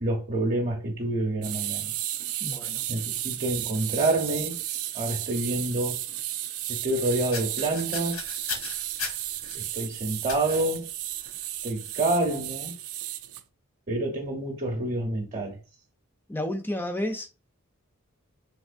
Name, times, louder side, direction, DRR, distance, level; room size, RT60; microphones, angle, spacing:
voice 1, 0.0-1.9 2.9-4.6 4.9-6.0 6.7-8.3 9.5-10.9 11.6-12.7 13.9-15.6, right 2 dB, 35° right, 0.7 m, -28 dB
sound 1, 1.4-13.4, right 13 dB, 85° right, 0.4 m, -34 dB
voice 2, 2.4-2.9 16.3-17.3, left 1 dB, 10° left, 0.4 m, -31 dB
sound 2, 7.0-9.6 10.3-10.7 11.2-11.4 11.8-12.0, left 4 dB, 80° left, 1.3 m, -37 dB
3.6 x 2.9 x 2.4 m
head